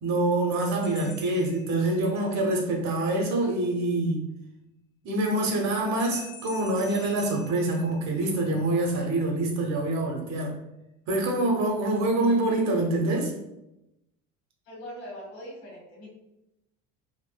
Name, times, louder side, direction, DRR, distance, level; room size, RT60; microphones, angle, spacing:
voice 1, 0.0-4.3 5.0-10.6 11.1-13.3, right 2 dB, 45° right, 1 dB, 0.9 m, -25 dB
sound 1, 0.8-2.4 6.0-8.5, left 4 dB, 50° left, 0.7 m, -47 dB
voice 2, 14.6-16.1, equal, 75° left, -3 dB, 1.4 m, -41 dB
3.7 x 2.5 x 2.2 m, 0.89 s
hypercardioid pair, 80°, 38 cm